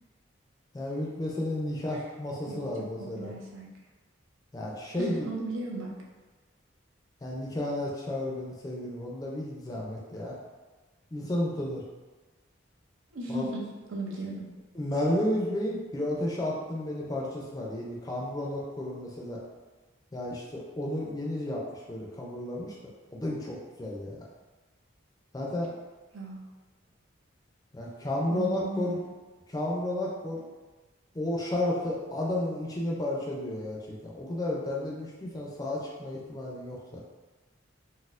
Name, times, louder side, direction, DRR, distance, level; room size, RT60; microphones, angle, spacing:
voice 1, 0.7-3.3 4.5-5.3 7.2-10.4 11.1-11.8 13.3-13.4 14.7-19.4 20.1-22.8 23.1-24.2 25.3-25.7 27.7-29.0 29.5-30.4 31.1-37.0, left 1 dB, 20° left, -3 dB, 0.4 m, -32 dB
voice 2, 2.5-3.7 5.0-5.9 13.1-14.5 26.1-26.5 28.3-29.0, right 1 dB, 85° right, -2 dB, 0.6 m, -36 dB
4.1 x 2.0 x 2.4 m, 1.2 s
head